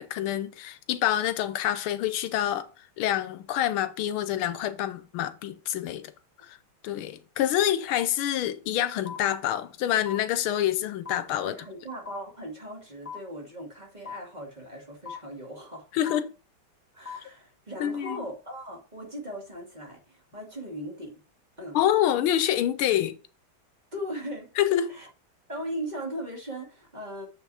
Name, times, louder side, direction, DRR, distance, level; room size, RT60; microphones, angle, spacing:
voice 1, 0.0-2.7 3.0-6.1 6.4-6.6 6.8-11.5 15.9-16.3 17.8-18.2 21.7-23.2 24.6-25.0, left 11 dB, 85° left, 1.5 m, -27 dB
sound 1, 9.1-9.2 10.1-10.2 11.1-11.2 12.1-12.2 13.1-13.2 14.1-14.2 15.1-15.2 16.1-16.2 17.1-17.2 18.1-18.2, left 7 dB, 25° left, 2.1 m, -37 dB
voice 2, 11.4-15.9 16.9-21.2 21.6-21.8 23.9-24.5 24.9-25.1 25.5-27.3, equal, 20° right, 2.3 m, -38 dB
7.0 x 5.8 x 4.2 m
omnidirectional pair, 2.3 m